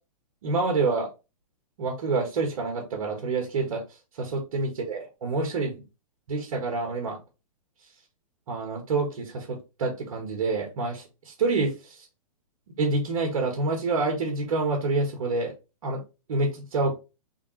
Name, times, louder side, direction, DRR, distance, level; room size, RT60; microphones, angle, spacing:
voice 1, 0.4-1.1 1.8-3.8 4.2-5.8 6.3-7.2 8.5-12.1 12.8-15.5 15.8-16.0 16.3-16.9, right 3 dB, 65° right, 1 dB, 1.4 m, -27 dB
3.6 x 3.5 x 3.1 m, 0.28 s
hypercardioid pair, 135°, 19 cm